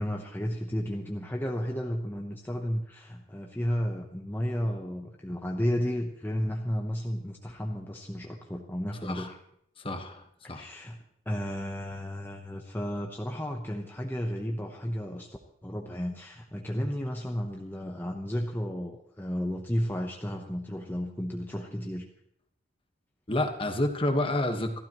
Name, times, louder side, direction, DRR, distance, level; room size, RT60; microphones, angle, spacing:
voice 1, 0.0-9.4 10.4-15.3 15.6-22.1, equal, 10° left, 1 dB, 0.9 m, -33 dB
voice 2, 9.0-9.3 9.8-10.2 10.5-10.7 23.3-24.8, left 1 dB, 30° left, 5 dB, 1.4 m, -29 dB
27.0 x 13.0 x 3.1 m, 0.73 s
head